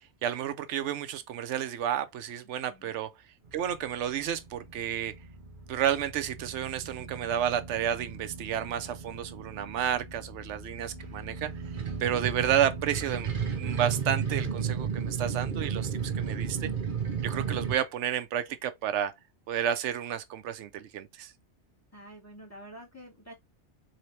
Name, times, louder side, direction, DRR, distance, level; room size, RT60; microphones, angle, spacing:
voice 1, 0.2-3.1 3.5-5.1 5.7-11.5 12.0-13.3 13.6-16.7 17.2-19.1 19.5-21.3, right 10 dB, 85° right, 0.9 m, -31 dB
voice 2, 2.4-3.0 21.9-23.3, right 1 dB, 15° left, 1.6 m, -48 dB
sound 1, 3.4-17.8, right 6 dB, 50° right, 0.9 m, -34 dB
4.0 x 2.8 x 3.1 m
omnidirectional pair, 1.2 m